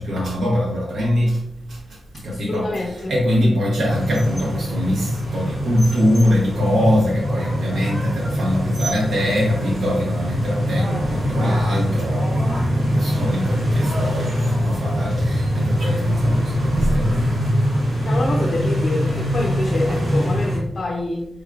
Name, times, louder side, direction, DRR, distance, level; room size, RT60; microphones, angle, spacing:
voice 1, 0.0-1.4 1.7-1.8 2.1-17.5, equal, 75° right, -4 dB, 1.0 m, -23 dB
voice 2, 2.3-3.1 18.0-21.3, left 2 dB, 40° left, -1 dB, 0.6 m, -26 dB
sound 1, 3.9-20.6, equal, 60° right, 1.5 m, -22 dB
4.6 x 3.5 x 2.4 m, 0.78 s
wide cardioid pair, 155°, 0 cm